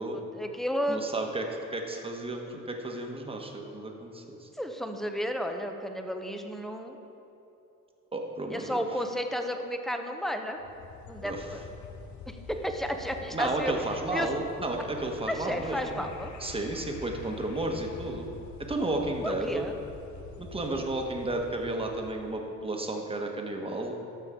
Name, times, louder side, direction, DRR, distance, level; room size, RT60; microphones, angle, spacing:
voice 1, 0.1-1.0 4.6-7.0 8.5-10.6 11.1-11.7 12.3-13.7 14.1-14.3 15.3-16.3 18.8-18.9 19.2-19.7, equal, ahead, 5 dB, 0.7 m, -32 dB
voice 2, 0.9-1.4 1.7-4.5 8.1-8.8 11.2-11.5 13.3-16.0 16.4-18.3 18.6-19.7 20.4-24.0, right 2 dB, 20° right, 2 dB, 1.2 m, -32 dB
sound 1, 10.6-22.5, left 5 dB, 70° left, 0.7 m, -46 dB
12.5 x 6.8 x 3.7 m, 2.9 s
cardioid pair, 90°, 30 cm